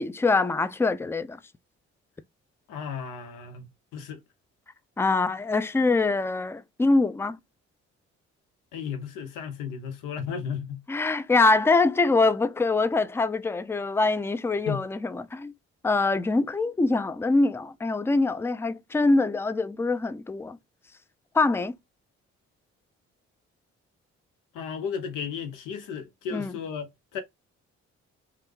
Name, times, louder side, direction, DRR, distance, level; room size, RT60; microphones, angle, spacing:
voice 1, 0.0-1.4 5.0-7.4 10.9-15.5 15.8-20.6 21.3-21.7 26.3-26.5, left 3 dB, 10° left, 0.4 m, -24 dB
voice 2, 2.7-4.2 8.7-10.8 14.7-14.8 24.5-27.2, left 6 dB, 75° left, 0.8 m, -34 dB
3.2 x 2.4 x 3.1 m
hypercardioid pair, 50°, 32 cm